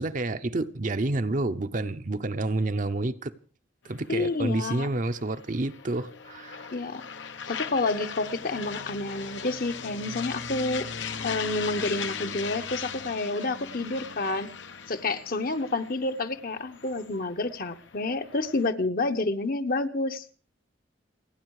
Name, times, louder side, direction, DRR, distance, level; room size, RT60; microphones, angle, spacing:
voice 1, 0.0-3.3 3.8-6.7, right 2 dB, 45° right, 0.8 m, -29 dB
sound 1, 3.9-18.7, left 6 dB, 75° left, 1.1 m, -39 dB
voice 2, 4.1-4.9 6.7-7.0 7.5-10.9 11.2-14.5 14.9-20.2, left 2 dB, 50° left, 1.1 m, -29 dB
29.0 x 10.0 x 4.8 m
head